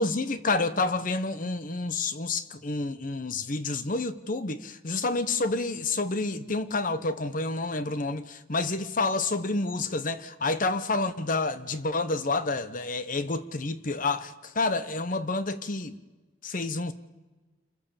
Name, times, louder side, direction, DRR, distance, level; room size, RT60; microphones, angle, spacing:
voice 1, 0.0-16.0 16.4-16.9, left 3 dB, 45° left, 1.0 m, -29 dB
28.0 x 24.0 x 7.2 m
head